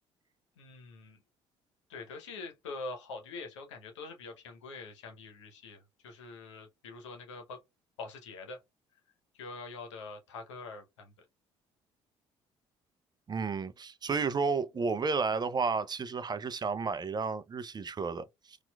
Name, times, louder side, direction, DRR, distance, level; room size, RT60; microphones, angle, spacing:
voice 1, 0.6-1.2 1.9-7.6 8.0-8.6 9.3-11.3, left 3 dB, 80° left, 0.8 m, -44 dB
voice 2, 13.3-18.6, right 4 dB, 30° right, 0.5 m, -32 dB
4.3 x 2.4 x 2.3 m
hypercardioid pair, 50°, 15 cm